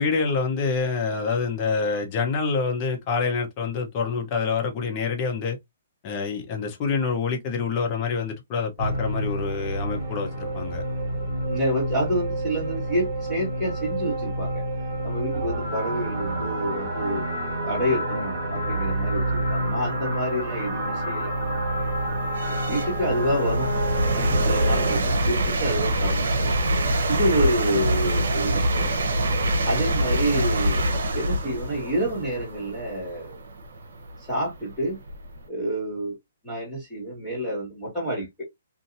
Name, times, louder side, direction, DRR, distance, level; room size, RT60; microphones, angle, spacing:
voice 1, 0.0-5.6 6.0-10.8, left 5 dB, 30° left, 0.9 m, -26 dB
sound 1, 8.8-25.0, right 1 dB, 35° right, 1.4 m, -28 dB
voice 2, 11.5-14.6 15.0-17.3 17.6-19.2 19.5-21.3 22.6-23.7 24.1-26.5 27.1-29.1 29.6-30.8 31.1-33.4 34.2-35.0 35.5-36.2 36.4-38.4, equal, 10° left, 1.8 m, -28 dB
sound 2, 20.0-20.1 20.7-35.4, right 1 dB, 70° right, 0.8 m, -25 dB
2.7 x 2.7 x 2.6 m
hypercardioid pair, 150°, 0 cm